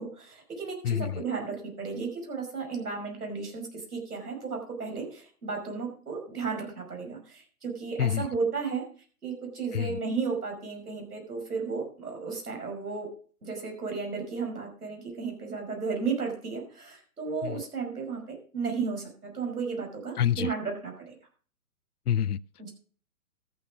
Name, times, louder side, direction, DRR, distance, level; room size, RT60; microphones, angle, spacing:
voice 1, 0.0-8.8 9.2-13.1 13.4-21.1 22.6-22.7, right 5 dB, 90° right, 5.6 m, -34 dB
voice 2, 0.8-1.2 8.0-8.3 9.7-10.0 17.4-17.6 20.2-20.5 22.1-22.4, left 10 dB, 90° left, 0.6 m, -27 dB
14.0 x 7.1 x 5.0 m
hypercardioid pair, 140°, 44 cm